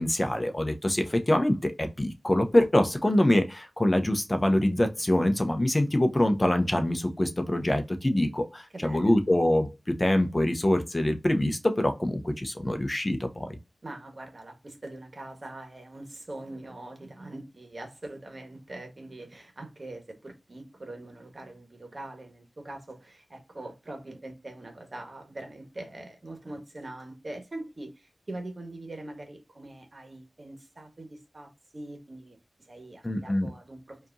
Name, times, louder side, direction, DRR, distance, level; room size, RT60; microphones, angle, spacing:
voice 1, 0.0-13.5 33.0-33.5, left 1 dB, 30° left, 0.8 m, -25 dB
voice 2, 8.7-9.1 13.8-32.4 32.7-34.1, right 2 dB, 50° right, 1.4 m, -43 dB
4.9 x 2.9 x 2.6 m
wide cardioid pair, 50°, 0 cm